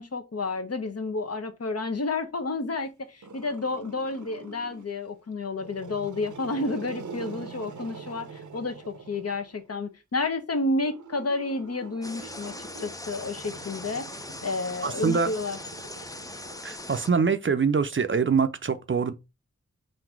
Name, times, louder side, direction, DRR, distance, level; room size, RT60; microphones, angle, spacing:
voice 1, 0.0-15.6, left 3 dB, 55° left, 0.8 m, -31 dB
Growling, 3.2-5.0 5.5-9.7 10.6-17.2, right 5 dB, 85° right, 0.6 m, -44 dB
sound 1, 12.0-17.1, left 2 dB, 10° left, 0.5 m, -40 dB
voice 2, 14.8-15.3 16.6-19.1, right 5 dB, 45° right, 0.5 m, -24 dB
3.9 x 2.6 x 4.5 m
wide cardioid pair, 50°, 29 cm